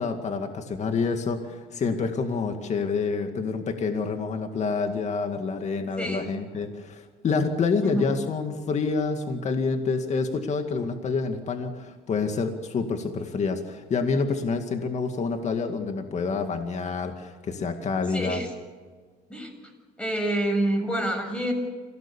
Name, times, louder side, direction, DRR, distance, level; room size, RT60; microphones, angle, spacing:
voice 1, 0.0-18.4, left 4 dB, 45° left, 6 dB, 2.1 m, -28 dB
voice 2, 6.0-6.3 7.8-8.1 18.1-18.5 19.3-19.7 20.0-21.5, right 1 dB, 5° left, 4 dB, 7.1 m, -27 dB
27.0 x 17.5 x 7.2 m, 1.5 s
cardioid pair, 110°, 17 cm